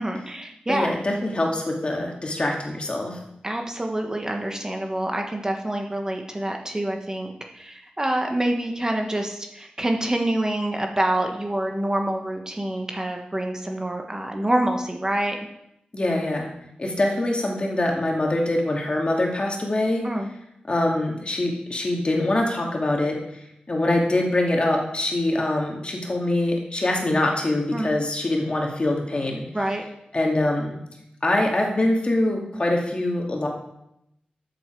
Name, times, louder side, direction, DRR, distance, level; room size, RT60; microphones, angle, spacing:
voice 1, 0.0-1.0 3.4-15.4 20.0-20.3 27.7-27.9 29.5-29.8, right 1 dB, 20° right, 3 dB, 1.4 m, -26 dB
voice 2, 0.7-3.2 15.9-16.5 16.8-20.0 20.7-23.2 23.7-29.5 30.1-30.7 31.2-33.5, left 1 dB, 40° left, 0 dB, 2.4 m, -24 dB
12.5 x 7.8 x 4.7 m, 0.81 s
wide cardioid pair, 80°, 3 cm